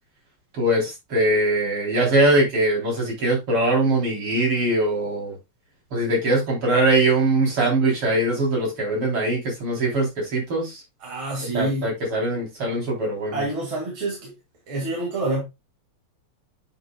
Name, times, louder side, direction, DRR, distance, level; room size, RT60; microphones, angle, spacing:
voice 1, 0.5-5.4 5.9-10.8 11.5-13.4, right 2 dB, 85° right, 4.7 m, -22 dB
voice 2, 11.0-11.9 13.3-14.3 14.7-15.4, right 2 dB, 70° right, 3.1 m, -27 dB
9.2 x 6.0 x 2.3 m
omnidirectional pair, 2.4 m